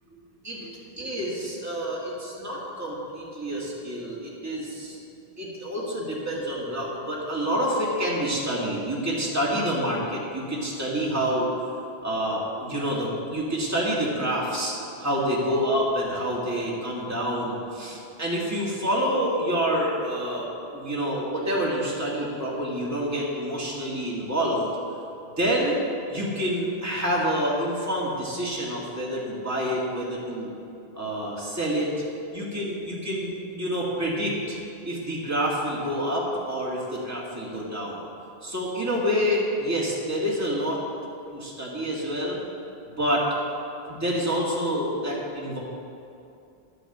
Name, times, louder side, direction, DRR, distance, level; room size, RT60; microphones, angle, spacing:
voice 1, 1.0-5.0 5.4-11.5 12.0-20.5 20.7-24.6 25.4-25.8 26.1-30.5 31.0-31.9 32.3-34.6 34.9-38.0 38.4-40.8 41.3-42.4 43.0-43.2 43.9-45.6, equal, 15° right, -6 dB, 2.1 m, -27 dB
11.0 x 6.6 x 8.0 m, 2.6 s
omnidirectional pair, 1.1 m